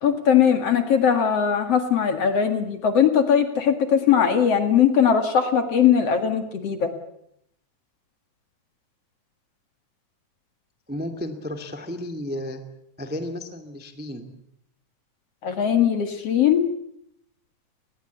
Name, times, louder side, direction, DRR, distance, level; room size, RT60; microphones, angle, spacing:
voice 1, 0.0-6.9 15.4-16.7, left 8 dB, 50° left, 7 dB, 2.6 m, -20 dB
voice 2, 10.9-12.6 13.0-14.3, left 1 dB, 5° right, 6 dB, 1.4 m, -33 dB
24.0 x 20.0 x 8.3 m, 0.74 s
omnidirectional pair, 3.9 m